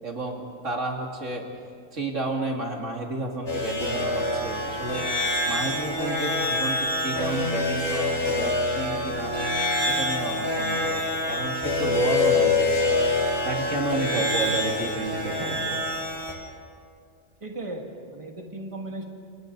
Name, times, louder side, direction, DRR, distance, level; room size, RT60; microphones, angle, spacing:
voice 1, 0.0-1.5 1.9-5.1 5.5-9.3 9.9-12.9 13.4-15.8, right 2 dB, 75° right, 1 dB, 2.8 m, -31 dB
sound 1, 3.5-16.3, left 2 dB, 20° left, 4.1 m, -26 dB
voice 2, 17.4-19.0, right 2 dB, 25° right, 1 dB, 2.2 m, -36 dB
29.5 x 29.0 x 4.0 m, 2.3 s
omnidirectional pair, 1.3 m